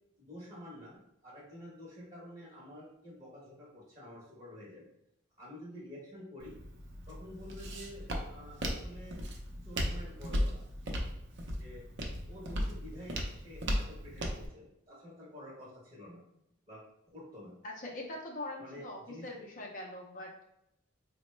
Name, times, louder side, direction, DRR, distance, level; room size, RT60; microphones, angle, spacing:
voice 1, 0.2-4.9 5.4-6.6 7.1-9.2 9.6-10.6 11.0-11.2 11.5-11.8 12.3-16.2 16.7-16.8 17.1-17.5 18.6-19.3, left 1 dB, 30° right, -6 dB, 0.8 m, -49 dB
Walk footsteps, 6.4-14.5, equal, 55° right, 0.6 m, -37 dB
voice 2, 17.6-20.4, left 1 dB, 40° left, -1 dB, 0.5 m, -42 dB
4.0 x 2.1 x 3.1 m, 0.82 s
head